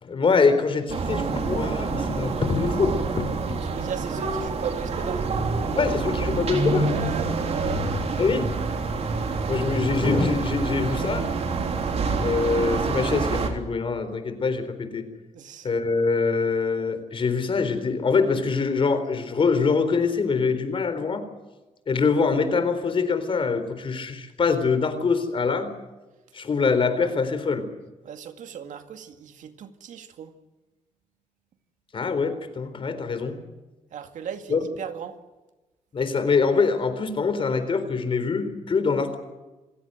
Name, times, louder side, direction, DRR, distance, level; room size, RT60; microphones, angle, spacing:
voice 1, 0.0-3.6 5.8-6.9 8.2-8.5 9.5-11.3 12.2-15.0 15.6-21.3 21.9-25.7 26.3-27.7 31.9-33.4 34.5-34.6 35.9-39.2, left 4 dB, 45° left, 4.0 m, -24 dB
sound 1, 0.9-13.5, right 4 dB, 55° right, 3.6 m, -27 dB
voice 2, 3.7-5.3 6.8-7.9 15.3-15.7 28.0-30.3 33.9-35.2, right 8 dB, 85° right, 2.2 m, -36 dB
28.0 x 17.0 x 7.9 m
cardioid pair, 125°, 13 cm